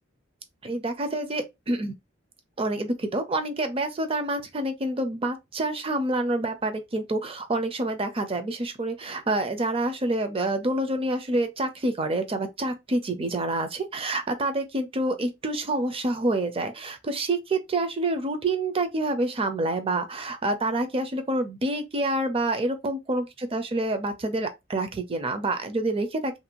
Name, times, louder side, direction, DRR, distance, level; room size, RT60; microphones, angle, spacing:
voice 1, 0.6-1.9 2.6-26.3, right 2 dB, 30° right, 0.5 m, -27 dB
2.6 x 2.3 x 2.8 m
head